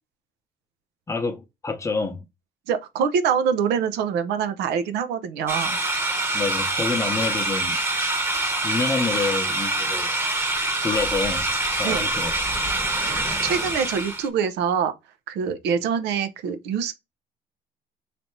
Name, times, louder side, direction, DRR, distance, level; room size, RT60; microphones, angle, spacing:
voice 1, 1.1-2.2 6.3-7.8 8.6-10.1 10.8-11.5 11.8-12.3, left 4 dB, 15° left, 0.7 m, -27 dB
voice 2, 2.7-5.8 11.8-12.1 13.0-14.9 15.3-16.9, right 7 dB, 85° right, 0.6 m, -25 dB
sound 1, 5.5-14.3, right 2 dB, 15° right, 1.0 m, -25 dB
3.3 x 2.6 x 4.4 m
cardioid pair, 110°, 17 cm